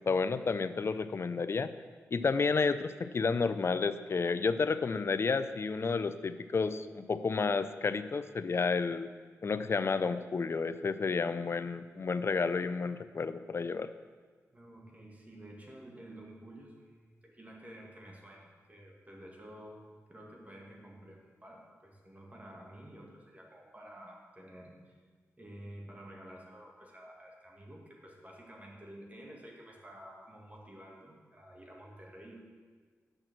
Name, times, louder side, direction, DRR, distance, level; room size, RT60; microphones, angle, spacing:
voice 1, 0.1-1.7 2.1-9.1 9.4-13.9, left 4 dB, 45° left, 13 dB, 0.4 m, -31 dB
voice 2, 14.5-19.8 20.1-25.0 25.4-32.4, right 1 dB, 25° right, -2 dB, 2.1 m, -51 dB
6.5 x 6.0 x 6.2 m, 1.5 s
supercardioid pair, 45°, 6 cm